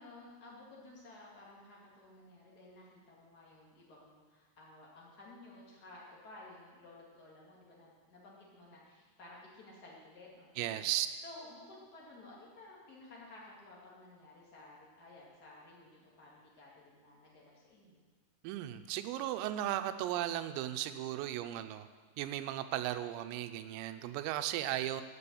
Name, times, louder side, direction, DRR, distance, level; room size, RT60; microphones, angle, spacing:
voice 1, 0.0-10.9 11.2-18.0, left 2 dB, 50° left, -5 dB, 1.2 m, -55 dB
voice 2, 10.6-11.2 18.4-21.9 22.2-25.0, right 13 dB, 90° right, 10 dB, 3.3 m, -36 dB
9.5 x 7.0 x 8.4 m, 1.5 s
omnidirectional pair, 5.9 m